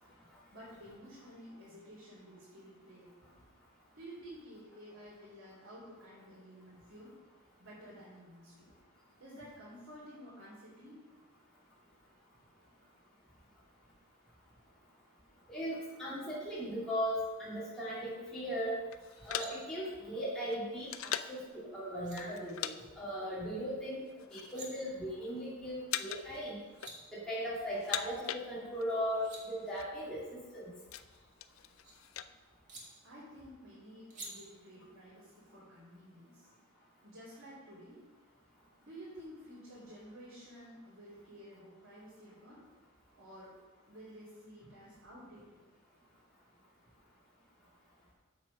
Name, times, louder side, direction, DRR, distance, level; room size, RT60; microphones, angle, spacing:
voice 1, 0.5-3.4 3.9-7.1 7.6-8.7 9.2-11.0 33.0-36.5 37.0-38.0 38.8-42.6 43.2-43.5 43.8-45.6, equal, 75° right, -9 dB, 3.4 m, -52 dB
voice 2, 15.5-18.8 19.3-20.9 21.3-24.0 24.3-26.6 27.1-30.2 30.5-30.7, equal, 5° left, -10 dB, 2.4 m, -38 dB
sound 1, 18.9-21.5 22.2-22.8 23.0-23.2 23.9-24.7 25.0-25.4 25.9-26.4 26.7-27.3 27.7-29.0 29.2-29.3 29.5-29.9 30.4-32.3, left 10 dB, 80° left, 0.4 m, -41 dB
sound 2, 19.0-19.5 21.6-21.7 22.0-22.2 24.2-24.7 26.4-26.5 26.6-27.0 28.9-29.4 30.9-31.9 32.7-32.8 34.1-34.3, right 2 dB, 35° right, 2.0 m, -50 dB
7.7 x 7.5 x 5.4 m, 1.3 s
head